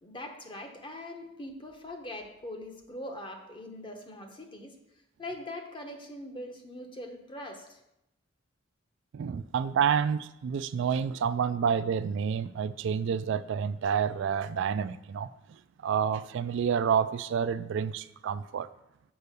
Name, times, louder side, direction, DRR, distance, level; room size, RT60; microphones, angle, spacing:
voice 1, 0.0-4.8 5.2-7.8, left 1 dB, 25° left, 1.0 m, -42 dB
voice 2, 9.1-18.7, right 7 dB, 65° right, 0.3 m, -29 dB
6.9 x 4.6 x 6.7 m
head